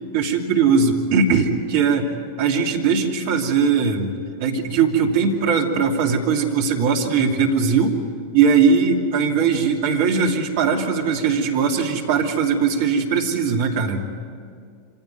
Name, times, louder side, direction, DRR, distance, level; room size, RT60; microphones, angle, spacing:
voice 1, 0.1-2.1 2.4-4.1 4.4-8.0 8.3-14.1, right 5 dB, 50° right, 2 dB, 2.7 m, -19 dB
26.0 x 16.0 x 9.5 m, 2.2 s
figure-of-eight pair, 90°, 0 cm